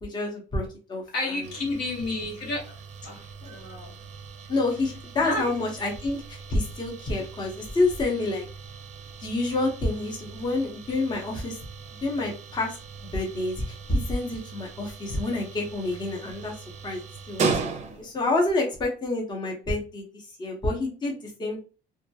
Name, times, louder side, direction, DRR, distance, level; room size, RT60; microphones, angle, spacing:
voice 1, 0.0-1.5 4.5-8.5 9.2-11.6 12.0-17.0 17.3-21.6, left 2 dB, 25° left, 0 dB, 0.7 m, -28 dB
voice 2, 1.1-2.8 3.0-3.9 5.2-5.4, left 2 dB, 75° left, -1 dB, 1.1 m, -31 dB
sound 1, 1.4-18.3, right 4 dB, 40° right, 0.5 m, -38 dB
2.2 x 2.1 x 2.7 m, 0.34 s
cardioid pair, 110°, 17 cm